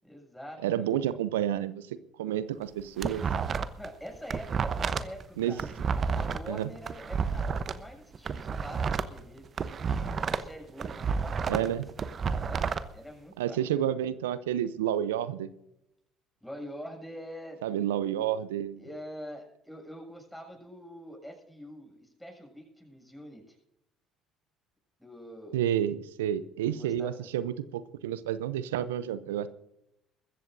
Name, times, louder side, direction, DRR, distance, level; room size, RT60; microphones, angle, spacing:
voice 1, 0.0-0.9 3.8-5.9 6.2-9.4 9.9-13.8 16.4-17.6 18.8-23.6 25.0-25.6 26.7-27.3, equal, ahead, 0 dB, 7.2 m, -45 dB
voice 2, 0.6-3.2 5.4-5.5 6.5-6.7 11.5-11.9 13.4-15.5 17.6-18.8 25.5-29.5, right 10 dB, 80° right, 16 dB, 0.5 m, -30 dB
sound 1, 2.6-3.9 4.1-7.7 8.1-10.5 10.8-12.8, right 6 dB, 45° right, 0.9 m, -30 dB
22.0 x 14.5 x 2.6 m, 0.81 s
hypercardioid pair, 55°, 0 cm